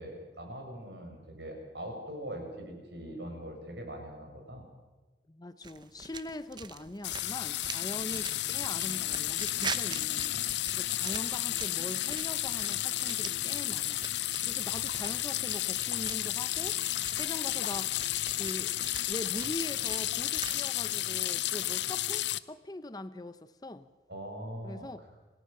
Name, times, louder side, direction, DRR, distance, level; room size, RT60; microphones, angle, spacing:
voice 1, 0.0-4.6 14.7-14.8 24.1-24.9, right 1 dB, 70° right, 2 dB, 6.6 m, -42 dB
voice 2, 5.3-10.3 10.7-14.0 14.5-16.8 17.2-18.0 18.3-18.7 19.1-23.9 24.6-25.0, left 1 dB, 20° left, 13 dB, 0.7 m, -42 dB
sound 1, 5.6-20.6, right 5 dB, 25° right, 0.8 m, -45 dB
sound 2, 7.0-22.4, left 14 dB, 70° left, 0.7 m, -32 dB
27.5 x 18.0 x 6.7 m, 1.2 s
head